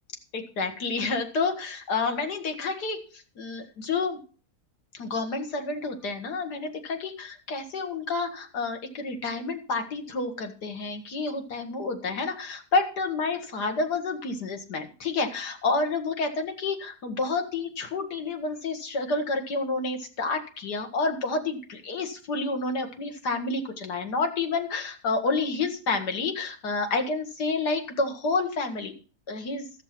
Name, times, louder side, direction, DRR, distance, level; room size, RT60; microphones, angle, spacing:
voice 1, 0.3-4.2 4.9-28.9 29.3-29.6, left 3 dB, 90° left, 5 dB, 2.2 m, -29 dB
13.5 x 7.0 x 5.9 m, 0.37 s
omnidirectional pair, 1.7 m